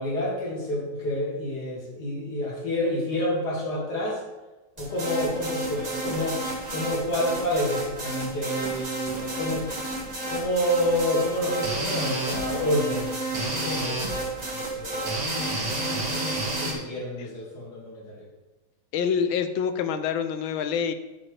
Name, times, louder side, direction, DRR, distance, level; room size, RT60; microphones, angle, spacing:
voice 1, 0.0-4.2 4.8-9.7 10.3-15.6 15.9-18.3, left 1 dB, 55° left, -4 dB, 2.7 m, -29 dB
sound 1, 4.8-16.7, right 2 dB, 25° right, 1.3 m, -30 dB
voice 2, 18.9-20.9, left 7 dB, 80° left, 9 dB, 1.4 m, -26 dB
8.8 x 7.1 x 3.3 m, 1.1 s
omnidirectional pair, 2.2 m